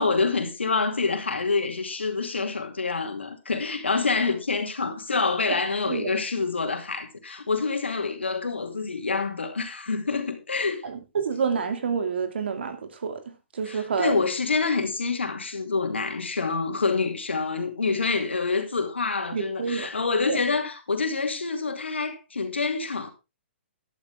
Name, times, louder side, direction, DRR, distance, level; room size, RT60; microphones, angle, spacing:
voice 1, 0.0-10.8 13.7-23.1, left 4 dB, 90° left, 2.6 m, -27 dB
voice 2, 10.8-13.2 13.5-14.2 19.3-19.9 20.3-20.4, right 6 dB, 70° right, 2.7 m, -28 dB
12.5 x 11.0 x 3.5 m
hypercardioid pair, 130°, 6 cm